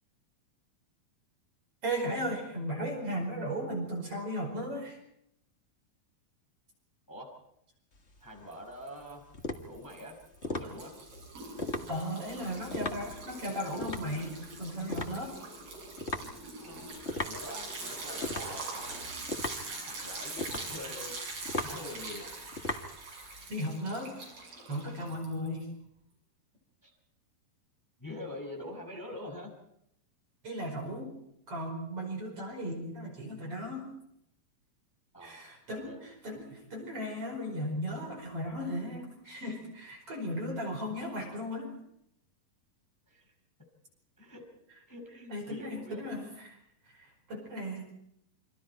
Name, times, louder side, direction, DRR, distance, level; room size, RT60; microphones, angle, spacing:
voice 1, 1.8-5.0 11.9-15.3 23.5-24.1 24.7-25.7 30.4-31.1 31.5-33.9 35.2-41.7 45.3-46.6 46.9-48.0, equal, 40° right, 1 dB, 5.8 m, -36 dB
sound 1, 7.9-23.5, left 2 dB, 85° left, 0.6 m, -39 dB
voice 2, 8.2-9.2 9.6-10.1 10.5-10.9 12.4-12.6 16.6-19.0 19.8-21.2 21.6-22.3 26.8-26.9 28.0-29.5 35.1-35.4 35.8-36.0 43.1-43.3 44.2-44.4 44.9-46.1, left 1 dB, 5° left, 1 dB, 5.3 m, -45 dB
Liquid, 8.5-9.1 9.4-25.6, right 3 dB, 65° right, 8.8 m, -43 dB
28.0 x 25.5 x 4.5 m, 0.77 s
omnidirectional pair, 4.4 m